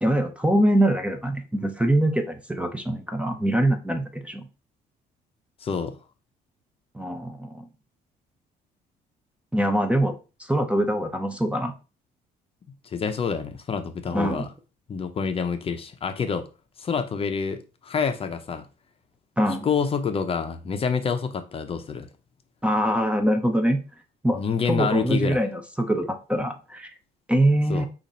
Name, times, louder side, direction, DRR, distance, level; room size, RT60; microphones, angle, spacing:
voice 1, 0.0-4.5 6.9-7.7 9.5-11.7 14.1-14.5 19.4-19.7 22.6-23.8 24.2-24.4 24.7-26.9 27.3-27.9, right 1 dB, 5° right, 0.6 m, -23 dB
voice 2, 5.6-6.0 12.8-14.5 14.9-16.5 16.8-18.7 19.6-22.1 24.3-25.4 27.7-27.9, left 6 dB, 35° left, 0.6 m, -27 dB
5.1 x 2.5 x 4.2 m
cardioid pair, 110°, 17 cm